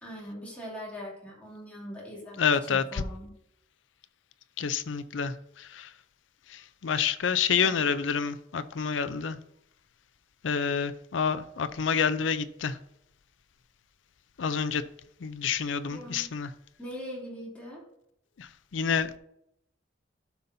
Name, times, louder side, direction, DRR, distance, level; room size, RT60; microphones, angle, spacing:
voice 1, 0.0-3.4 7.6-7.8 15.9-16.3 16.8-17.8, equal, 10° left, 2.6 m, -41 dB
voice 2, 2.4-3.0 4.6-5.9 6.5-9.4 10.4-12.8 14.4-14.8 15.2-16.5 18.4-19.2, left 6 dB, 80° left, 0.5 m, -28 dB
12.5 x 5.4 x 2.7 m
head